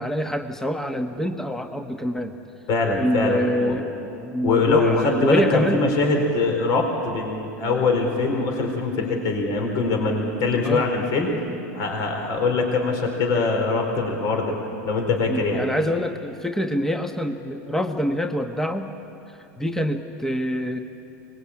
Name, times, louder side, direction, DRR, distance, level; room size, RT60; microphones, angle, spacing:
voice 1, 0.0-2.4 3.0-5.8 8.3-8.4 10.6-10.9 15.3-18.9 19.6-20.8, equal, 5° left, 6 dB, 1.3 m, -25 dB
voice 2, 2.7-3.8 4.4-11.3 11.7-14.5 14.8-15.6, left 3 dB, 50° left, 3 dB, 4.3 m, -22 dB
24.5 x 20.5 x 8.7 m, 2.7 s
hypercardioid pair, 90°, 8 cm